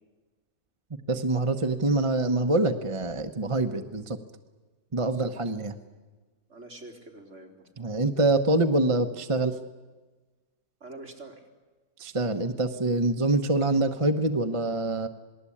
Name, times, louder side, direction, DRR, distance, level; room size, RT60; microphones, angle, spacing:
voice 1, 1.1-4.2 4.9-5.7 7.8-9.5 12.0-15.1, right 2 dB, 25° right, 7 dB, 1.0 m, -25 dB
voice 2, 5.0-5.3 6.5-7.7 10.8-11.4, right 2 dB, 50° right, 2 dB, 4.0 m, -45 dB
27.5 x 20.0 x 8.7 m, 1.3 s
omnidirectional pair, 1.6 m